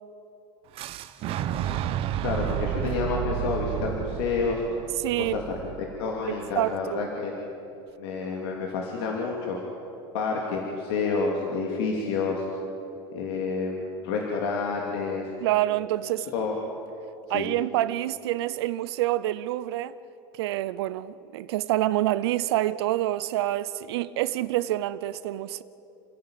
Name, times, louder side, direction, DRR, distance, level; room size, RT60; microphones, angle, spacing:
Fire / Explosion, 0.7-6.6, right 11 dB, 45° right, 1.0 m, -31 dB
voice 1, 2.2-4.6 5.2-5.4 6.0-7.3 8.0-9.6 10.1-12.4 13.1-15.3 16.3-16.6 17.3-17.5, left 4 dB, 75° left, 2.8 m, -29 dB
voice 2, 5.0-5.4 6.3-7.1 15.4-16.3 17.3-19.9 20.4-25.6, right 15 dB, 85° right, 0.7 m, -27 dB
29.0 x 10.5 x 9.0 m
supercardioid pair, 130°, 13 cm